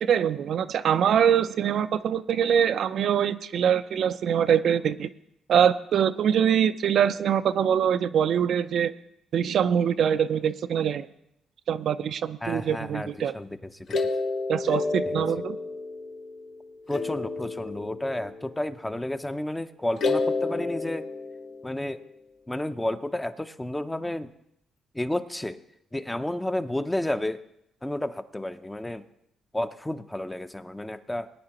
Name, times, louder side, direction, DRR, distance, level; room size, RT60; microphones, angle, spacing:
voice 1, 0.0-5.1 5.5-8.9 9.3-11.1 11.7-13.3 14.5-15.6, right 8 dB, 65° right, 11 dB, 0.4 m, -23 dB
voice 2, 12.4-14.1 15.1-15.3 16.9-21.1 21.6-22.0 22.5-24.3 24.9-25.6 25.9-27.4 27.8-29.0 29.5-31.3, left 1 dB, 10° left, 10 dB, 0.6 m, -31 dB
sound 1, 13.9-16.5 16.9-18.4 20.0-21.9, left 3 dB, 60° left, 1.1 m, -30 dB
19.5 x 9.4 x 2.9 m, 0.78 s
cardioid pair, 90°, 0 cm